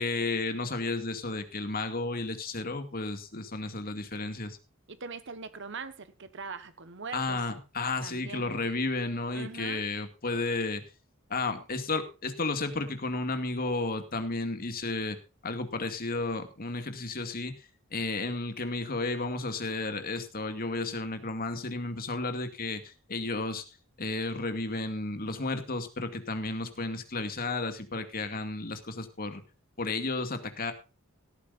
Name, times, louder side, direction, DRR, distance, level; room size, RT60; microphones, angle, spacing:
voice 1, 0.0-4.6 7.1-10.8 11.3-15.2 15.4-17.5 17.9-23.6 24.0-29.4 29.8-30.7, left 3 dB, 45° left, 2.3 m, -32 dB
voice 2, 4.9-7.4 8.0-8.5 9.3-9.8, right 4 dB, 60° right, 1.4 m, -41 dB
17.5 x 13.5 x 2.6 m
head